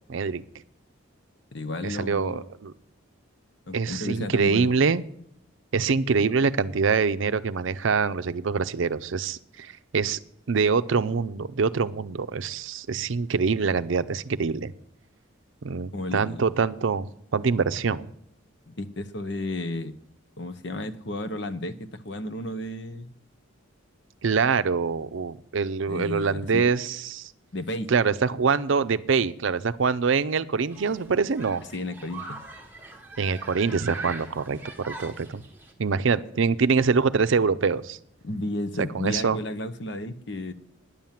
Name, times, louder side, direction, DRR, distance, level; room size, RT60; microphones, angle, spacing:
voice 1, 0.1-0.4 1.8-2.7 3.7-5.0 5.7-10.2 10.5-14.7 15.6-18.1 24.2-27.3 27.9-31.6 33.2-35.4 35.8-38.0 38.9-39.4, right 5 dB, 75° right, 13 dB, 0.5 m, -25 dB
voice 2, 1.5-2.5 3.7-4.7 15.9-16.5 18.7-20.0 20.4-23.1 25.9-26.7 27.5-27.9 31.7-32.4 38.2-40.5, left 1 dB, 55° left, 10 dB, 0.8 m, -33 dB
Human group actions, 30.7-35.7, right 3 dB, 10° right, 1.3 m, -41 dB
10.0 x 7.2 x 9.1 m, 0.73 s
head